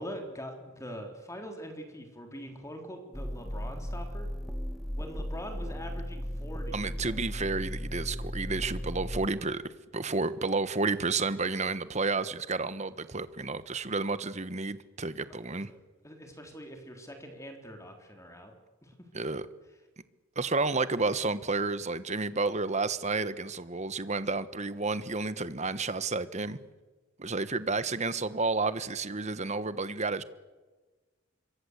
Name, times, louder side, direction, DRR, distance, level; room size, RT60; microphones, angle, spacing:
voice 1, 0.0-4.3 5.0-6.8 15.2-18.5 18.8-19.1, equal, 15° left, 4 dB, 3.7 m, -43 dB
sound 1, 3.1-9.3, equal, ahead, 1.7 m, -36 dB
voice 2, 6.7-9.6 9.9-15.7 19.1-19.4 20.3-26.6 27.2-30.2, right 3 dB, 35° right, 14 dB, 1.3 m, -31 dB
26.0 x 24.0 x 8.2 m, 1.2 s
head